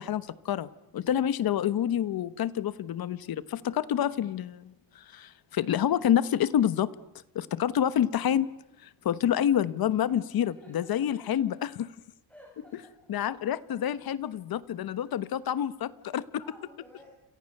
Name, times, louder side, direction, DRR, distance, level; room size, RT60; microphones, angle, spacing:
voice 1, 0.0-6.9 7.3-8.5 8.8-11.9 13.1-16.2, left 10 dB, 50° left, 16 dB, 1.1 m, -28 dB
voice 2, 10.1-11.3 12.3-13.1 14.8-14.9 16.4-17.1, equal, 5° left, -2 dB, 7.5 m, -54 dB
30.0 x 28.0 x 6.7 m, 0.86 s
cardioid pair, 155°, 46 cm